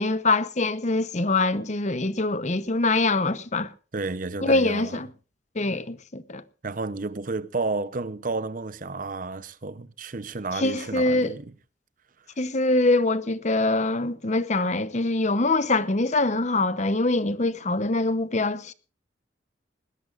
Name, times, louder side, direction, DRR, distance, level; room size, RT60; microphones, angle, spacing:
voice 1, 0.0-3.7 4.4-5.1 5.6-6.4 10.5-11.4 12.4-18.7, left 2 dB, 40° left, 0.9 m, -24 dB
voice 2, 3.9-5.0 6.6-11.5, right 3 dB, 45° right, 0.8 m, -31 dB
20.5 x 18.5 x 2.5 m
head